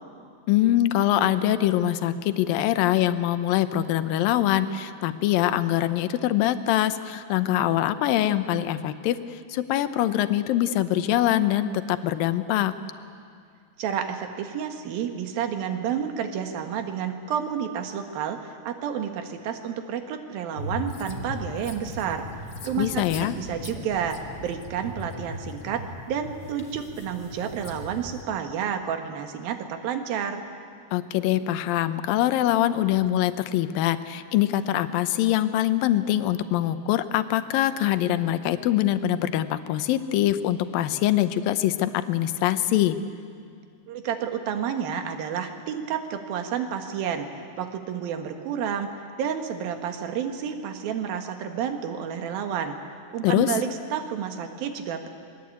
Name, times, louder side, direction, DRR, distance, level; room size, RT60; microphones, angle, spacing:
voice 1, 0.5-12.7 22.8-23.3 30.9-43.0 53.2-53.5, left 13 dB, 75° left, 11 dB, 2.4 m, -23 dB
voice 2, 13.8-22.3 22.6-30.4 43.9-47.3 47.6-48.9 49.2-52.7 53.1-55.1, right 8 dB, 70° right, 6 dB, 3.3 m, -30 dB
sound 1, 20.6-28.2, left 1 dB, 35° left, 2.0 m, -38 dB
27.0 x 22.0 x 8.6 m, 2.3 s
omnidirectional pair, 4.5 m